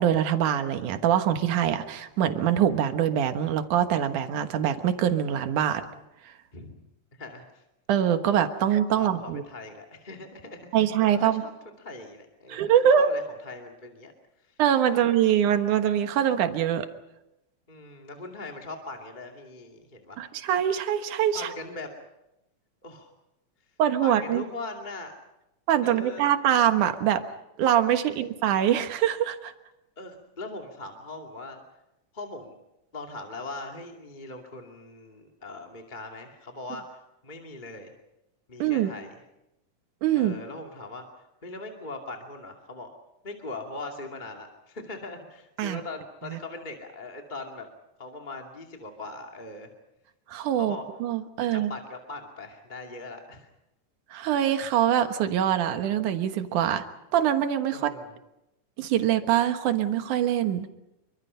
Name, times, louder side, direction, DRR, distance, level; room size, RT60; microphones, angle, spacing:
voice 1, 0.0-5.8 7.9-9.4 10.7-11.4 12.5-13.1 14.6-16.9 20.2-21.5 23.8-24.4 25.7-27.2 27.6-29.5 38.6-38.9 40.0-40.3 45.6-45.8 46.3-46.4 50.3-51.7 54.1-56.8 57.1-57.9 58.8-60.7, right 10 dB, 80° right, 8 dB, 2.8 m, -24 dB
voice 2, 7.1-7.6 9.0-14.1 14.4-14.6 14.9-15.0 17.7-20.3 21.3-21.9 22.8-23.1 24.0-25.1 25.8-26.3 28.1-28.3 30.0-31.6 32.1-32.5 32.9-37.9 38.5-39.2 40.1-41.0 41.4-42.9 43.2-47.7 48.0-49.7 50.5-50.8 51.5-53.5 57.7-58.1, left 2 dB, 15° left, 2 dB, 2.2 m, -40 dB
28.0 x 24.5 x 5.6 m, 0.89 s
omnidirectional pair, 3.6 m